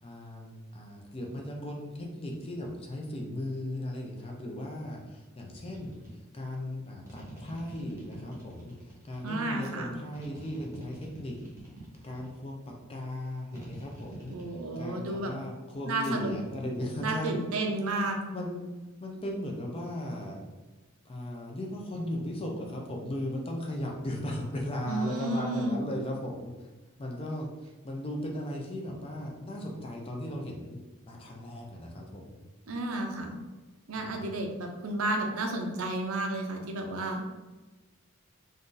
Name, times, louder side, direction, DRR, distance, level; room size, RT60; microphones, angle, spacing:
voice 1, 0.0-11.4 12.0-17.3 18.3-18.7 19.0-20.4 21.0-26.7 27.0-30.8 31.1-32.4 34.0-34.3, left 1 dB, 25° left, 0 dB, 0.5 m, -37 dB
sound 1, 5.5-6.1 7.1-9.2 10.1-12.4 13.5-14.5, right 1 dB, 15° right, 0.8 m, -47 dB
voice 2, 9.2-9.9 14.3-15.3 15.8-16.3 17.0-18.2 24.9-25.8 32.7-33.4 33.9-37.2, right 2 dB, 75° right, 2 dB, 0.6 m, -32 dB
2.7 x 2.5 x 3.7 m, 1.2 s
head